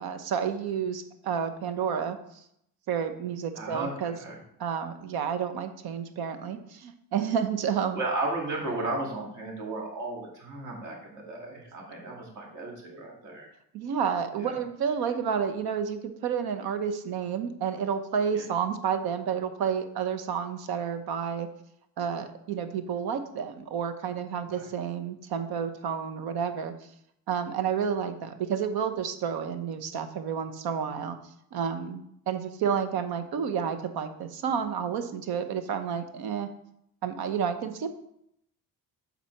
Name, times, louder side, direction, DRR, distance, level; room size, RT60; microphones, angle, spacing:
voice 1, 0.0-2.2 2.9-4.2 4.6-8.0 13.7-21.5 22.0-26.7 27.3-31.2 31.5-36.5 37.0-37.9, right 7 dB, 75° right, 9 dB, 1.0 m, -30 dB
voice 2, 3.5-4.4 7.9-13.5 14.4-14.6 18.3-18.4 24.5-24.6, right 2 dB, 50° right, -1 dB, 2.4 m, -34 dB
7.3 x 4.1 x 5.9 m, 0.74 s
cardioid pair, 145°, 37 cm